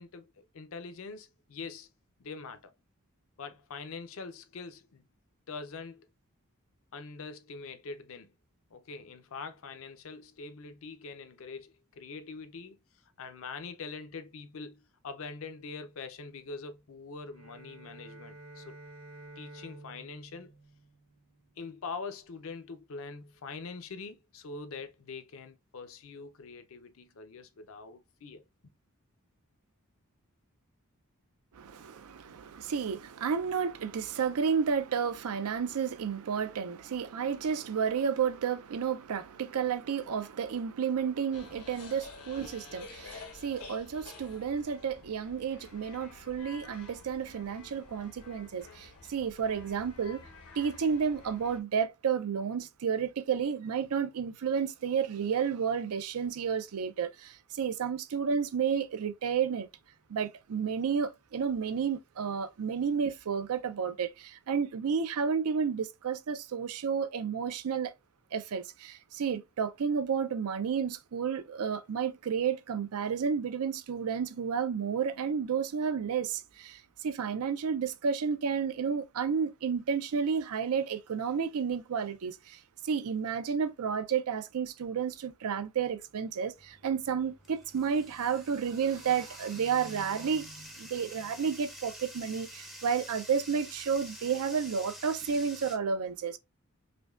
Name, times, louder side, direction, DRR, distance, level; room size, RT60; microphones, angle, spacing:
voice 1, 0.0-1.9 2.2-2.7 3.4-5.0 5.5-6.1 6.9-8.3 8.7-12.8 13.2-18.8 19.4-20.5 21.6-28.4, left 4 dB, 65° left, 0.5 m, -43 dB
Bowed string instrument, 17.3-21.6, right 2 dB, 60° right, 1.0 m, -51 dB
voice 2, 31.5-50.2 50.6-59.7 60.1-67.9 68.3-96.4, right 6 dB, 80° right, 0.5 m, -31 dB
sound 1, 41.3-51.6, left 4 dB, 85° left, 1.0 m, -50 dB
Bathtub (filling or washing), 86.6-95.8, equal, ahead, 0.5 m, -48 dB
5.0 x 2.2 x 2.3 m
head